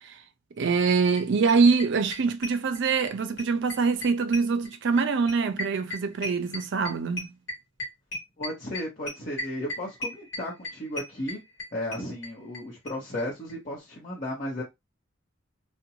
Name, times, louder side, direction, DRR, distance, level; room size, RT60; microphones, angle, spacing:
voice 1, 0.6-7.3, right 4 dB, 60° right, 0.4 m, -24 dB
sound 1, 0.8-0.9 1.2-1.3 1.5-3.1 3.4-12.6 12.9-13.0 13.2-13.3 13.5-13.6, left 1 dB, 60° left, 1.1 m, -36 dB
voice 2, 8.4-11.4 11.7-14.6, left 1 dB, 40° left, 0.8 m, -34 dB
2.5 x 2.1 x 2.8 m
head